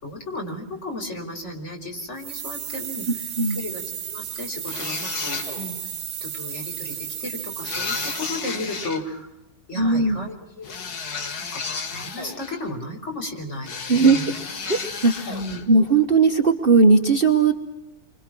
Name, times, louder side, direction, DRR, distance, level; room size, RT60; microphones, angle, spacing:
voice 1, 0.0-5.8 6.2-9.3 9.7-10.7 11.4-14.3 15.3-15.7, left 1 dB, 40° left, 2 dB, 5.1 m, -34 dB
sound 1, 2.2-8.6, right 9 dB, 65° right, 1.6 m, -34 dB
sound 2, 4.7-5.8 7.6-9.0 10.6-12.7 13.6-15.7, left 5 dB, 65° left, 2.2 m, -32 dB
voice 2, 9.8-10.3 13.9-14.2 14.7-15.4 15.7-17.5, right 4 dB, 35° right, 5 dB, 1.3 m, -18 dB
29.5 x 25.0 x 6.1 m, 0.84 s
omnidirectional pair, 1.8 m